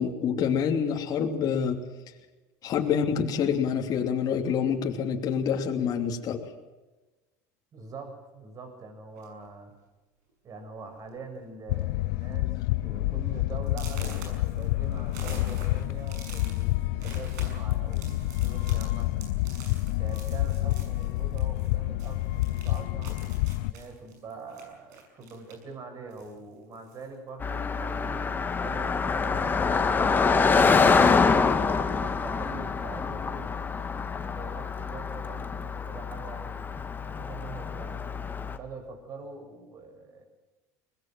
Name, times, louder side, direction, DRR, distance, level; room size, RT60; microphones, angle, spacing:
voice 1, 0.0-1.8 2.6-6.4, left 7 dB, 45° left, 2 dB, 3.0 m, -27 dB
voice 2, 7.7-9.7 10.4-19.3 20.0-23.1 23.7-29.5 29.9-31.4 31.8-33.5 34.0-36.6 37.0-38.1 38.5-40.2, right 4 dB, 40° right, 5 dB, 6.8 m, -44 dB
sound 1, 9.1-9.5 10.3-10.4 10.8-11.0 11.3-11.8 12.2-12.3 12.8-12.9 13.7-21.7 22.0-25.7 26.1-27.1, right 4 dB, 85° right, 6.4 m, -47 dB
sound 2, 11.7-23.7, left 17 dB, 75° left, 0.8 m, -28 dB
Car passing by, 27.4-38.6, left 5 dB, 20° left, 1.9 m, -26 dB
22.5 x 20.0 x 7.7 m, 1.1 s
supercardioid pair, 100°, 9 cm